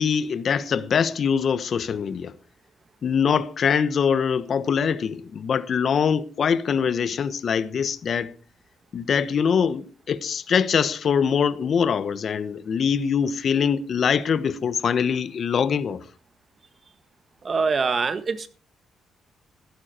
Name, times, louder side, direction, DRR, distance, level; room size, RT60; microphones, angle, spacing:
voice 1, 0.0-2.3 3.0-8.3 8.9-16.0, left 7 dB, 55° left, 1.2 m, -23 dB
voice 2, 17.4-18.5, right 4 dB, 40° right, 1.7 m, -24 dB
15.0 x 12.0 x 4.5 m
cardioid pair, 90°, 0 cm